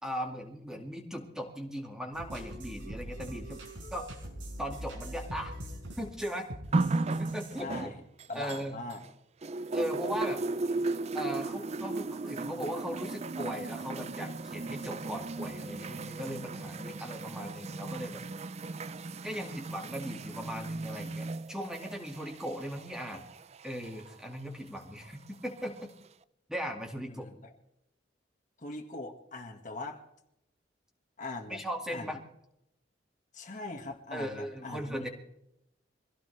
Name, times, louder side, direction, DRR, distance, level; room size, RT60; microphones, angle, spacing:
voice 1, 0.0-4.1 4.6-5.5 6.0-6.5 7.2-7.9 8.3-8.8 9.7-10.5 11.1-18.2 19.2-23.2 23.6-25.9 26.5-27.3 31.5-32.2 34.1-35.1, equal, 5° right, 1 dB, 2.2 m, -38 dB
sound 1, 2.1-7.6, equal, 90° right, 4.9 m, -43 dB
voice 2, 6.7-7.1 7.6-8.0 8.3-9.0 27.1-27.5 28.6-30.0 31.2-31.6 31.9-32.1 33.3-35.1, left 2 dB, 45° left, 2 dB, 1.9 m, -41 dB
sound 2, 6.7-9.1 9.4-24.1 25.0-25.1, right 3 dB, 35° right, 0.5 m, -36 dB
24.0 x 17.0 x 3.4 m, 0.82 s
head